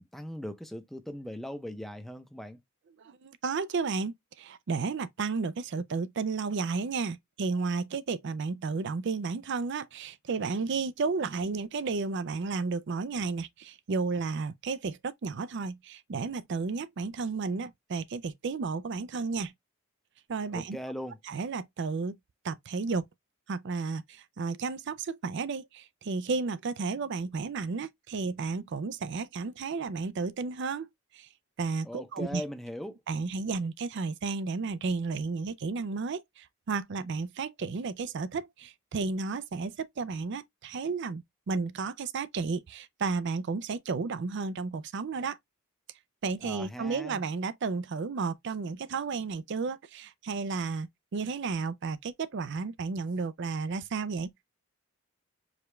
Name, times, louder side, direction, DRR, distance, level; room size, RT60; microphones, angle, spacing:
voice 1, 0.0-2.6 20.5-21.2 31.8-33.0 46.4-47.2, equal, ahead, 0.5 m, -39 dB
voice 2, 3.0-19.5 20.3-20.8 21.3-22.1 22.4-23.1 23.5-30.9 31.1-31.3 31.6-32.4 33.1-45.4 46.2-54.3, right 4 dB, 55° right, 0.4 m, -33 dB
4.9 x 2.3 x 3.1 m
head